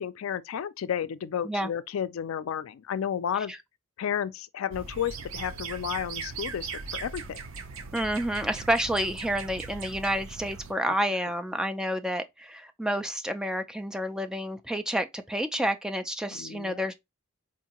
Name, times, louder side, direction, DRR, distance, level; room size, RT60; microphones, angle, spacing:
voice 1, 0.0-3.5 4.0-7.4 16.3-16.8, left 8 dB, 80° left, 0.4 m, -32 dB
sound 1, 4.7-10.7, right 5 dB, 75° right, 0.5 m, -39 dB
voice 2, 7.9-16.9, equal, 5° right, 0.3 m, -29 dB
4.6 x 2.5 x 2.9 m
head